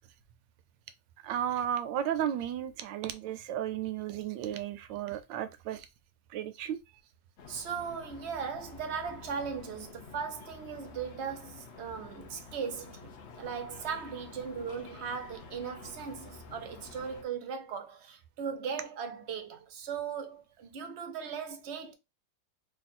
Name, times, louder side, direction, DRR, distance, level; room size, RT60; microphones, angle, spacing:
voice 1, 1.2-5.9 6.3-6.8, right 10 dB, 80° right, 1.2 m, -34 dB
sound 1, 7.4-17.2, left 4 dB, 70° left, 0.6 m, -50 dB
voice 2, 7.5-13.1 13.4-21.9, right 6 dB, 65° right, 0.6 m, -38 dB
3.2 x 2.3 x 4.2 m
omnidirectional pair, 2.0 m